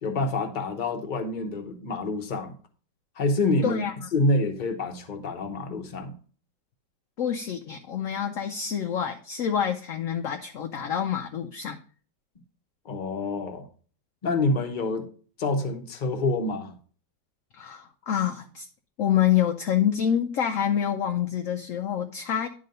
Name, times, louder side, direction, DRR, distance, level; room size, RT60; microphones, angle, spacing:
voice 1, 0.0-2.5 3.2-3.8 4.1-6.1 12.8-13.6 14.2-15.1 15.4-16.7, left 2 dB, 35° left, 0.9 m, -27 dB
voice 2, 3.6-4.1 7.2-11.8 17.5-18.7 19.0-22.5, left 9 dB, 65° left, 0.8 m, -27 dB
10.5 x 3.8 x 5.3 m
omnidirectional pair, 1.9 m